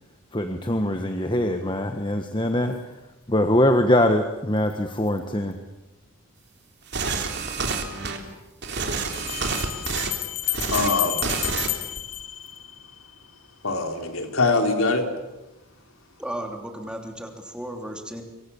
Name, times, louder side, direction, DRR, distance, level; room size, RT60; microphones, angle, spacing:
voice 1, 0.3-2.7 3.3-5.6, left 1 dB, 20° left, 6 dB, 1.4 m, -22 dB
sound 1, 6.9-8.2 8.6-10.1 10.4-10.9 11.2-11.7 12.0-12.2, right 4 dB, 50° right, 3.4 m, -28 dB
Bell, 7.5-7.6 9.1-13.1, left 15 dB, 90° left, 2.0 m, -31 dB
voice 2, 10.7-11.3 13.6-15.1, left 3 dB, 65° left, 5 dB, 3.6 m, -23 dB
voice 3, 16.2-18.2, right 1 dB, 5° right, 3 dB, 3.1 m, -34 dB
25.5 x 24.5 x 7.1 m, 1.0 s
head